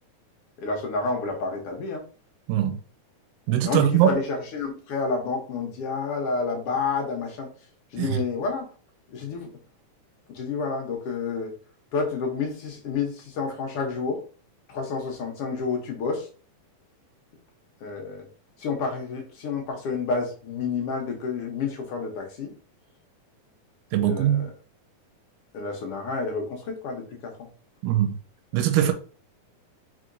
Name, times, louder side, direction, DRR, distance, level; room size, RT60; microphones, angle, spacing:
voice 1, 0.6-2.1 3.6-7.5 7.9-8.6 9.1-9.5 10.3-11.5 11.9-14.2 14.7-16.3 17.8-18.3 18.6-22.5 24.1-24.5 25.5-27.5 28.8-28.9, left 4 dB, 65° left, 1.5 m, -29 dB
voice 2, 3.5-4.1 8.0-8.2 23.9-24.5 27.8-28.2 28.5-28.9, right 11 dB, 85° right, 2.1 m, -21 dB
4.6 x 4.0 x 2.6 m
omnidirectional pair, 3.6 m